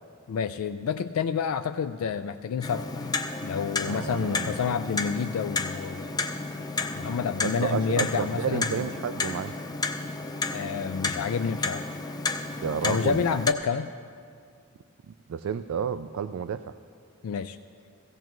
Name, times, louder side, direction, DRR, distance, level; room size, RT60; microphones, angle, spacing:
voice 1, 0.3-6.3 6.8-8.8 10.5-11.9 12.8-13.9 17.2-17.6, left 6 dB, 75° left, 9 dB, 0.3 m, -29 dB
Clock, 2.6-13.5, left 3 dB, 20° left, 0.5 m, -32 dB
voice 2, 3.9-4.7 7.4-9.5 12.6-13.3 15.3-16.7, right 7 dB, 65° right, 10 dB, 0.3 m, -31 dB
16.0 x 16.0 x 3.1 m, 2.3 s
head